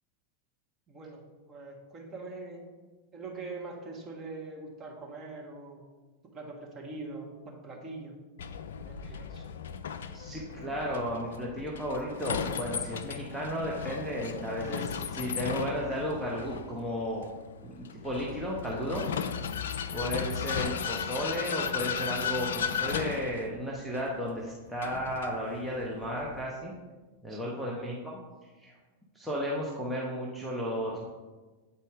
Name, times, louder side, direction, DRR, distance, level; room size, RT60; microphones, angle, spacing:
voice 1, 0.9-1.2 1.5-2.6 3.1-5.8 6.3-8.1 8.8-9.4 27.3-27.5, right 3 dB, 25° right, -1 dB, 1.4 m, -43 dB
Vehicle, 8.4-26.5, left 7 dB, 60° left, 0.3 m, -36 dB
voice 2, 10.1-17.3 17.6-19.0 19.9-26.7 27.2-28.2 28.6-28.7 29.1-31.1, equal, 5° right, -5 dB, 0.9 m, -34 dB
8.5 x 4.2 x 3.5 m, 1.3 s
figure-of-eight pair, 90°, 0 cm